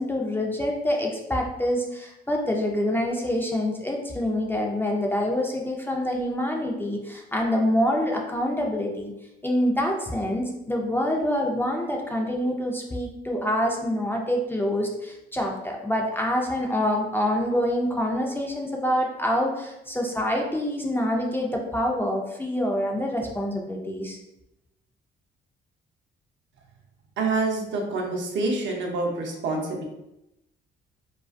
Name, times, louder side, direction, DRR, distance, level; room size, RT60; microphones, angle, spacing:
voice 1, 0.0-9.1 9.4-24.2, left 1 dB, 10° left, 0 dB, 0.3 m, -26 dB
voice 2, 27.2-29.8, right 3 dB, 70° right, 0 dB, 0.6 m, -27 dB
2.3 x 2.3 x 2.4 m, 0.89 s
cardioid pair, 90°, 20 cm